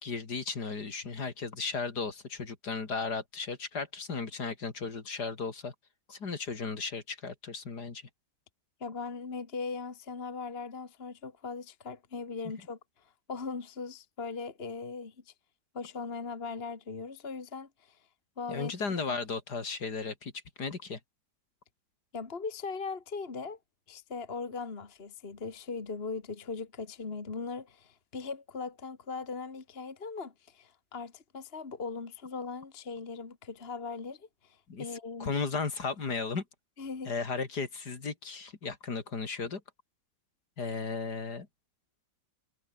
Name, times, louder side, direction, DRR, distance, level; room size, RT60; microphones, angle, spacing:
voice 1, 0.0-5.7 6.1-8.0 18.5-20.3 20.6-21.0 34.7-34.8 35.2-36.4 37.0-39.6 40.6-41.5, left 4 dB, 60° left, 3.3 m, -35 dB
voice 2, 8.8-15.3 15.7-18.1 18.4-18.7 19.1-19.2 22.1-23.6 23.9-35.3 36.8-37.1, left 4 dB, 35° left, 2.0 m, -39 dB
omnidirectional pair, 2.0 m